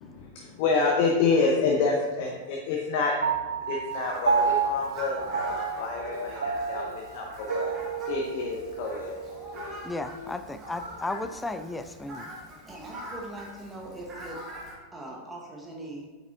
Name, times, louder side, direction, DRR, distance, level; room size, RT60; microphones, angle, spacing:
voice 1, 0.0-3.1 3.7-7.7 8.1-9.2, left 4 dB, 45° left, -1 dB, 0.8 m, -28 dB
Piano, 3.2-9.9, right 5 dB, 70° right, 0.4 m, -30 dB
Speech, 3.9-4.9 5.2-5.6 5.9-6.3 6.7-7.0 7.4-7.7 8.1-8.4 8.8-9.1 9.5-10.4 11.1-11.4, left 5 dB, 70° left, 0.5 m, -42 dB
Fowl, 3.9-14.7, equal, 25° right, 1.5 m, -43 dB
voice 2, 9.8-12.3, left 2 dB, 10° left, 9 dB, 0.4 m, -34 dB
voice 3, 12.7-14.4 14.9-16.1, right 1 dB, 10° right, -2 dB, 1.2 m, -41 dB
8.2 x 5.1 x 2.5 m, 1.3 s
figure-of-eight pair, 90°, 0 cm